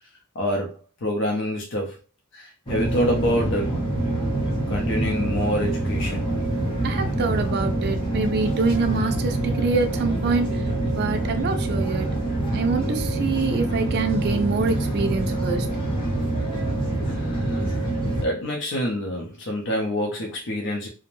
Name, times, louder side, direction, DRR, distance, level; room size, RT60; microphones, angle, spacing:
voice 1, 0.3-2.0 2.3-3.8 4.7-6.3 17.1-17.8 18.2-20.9, equal, 60° left, 0.6 m, -27 dB
sound 1, 2.7-18.2, right 1 dB, 25° left, 0.7 m, -25 dB
voice 2, 6.8-10.7 10.9-12.2 12.5-15.7, right 4 dB, 50° right, 0.4 m, -25 dB
2.5 x 2.1 x 3.0 m
head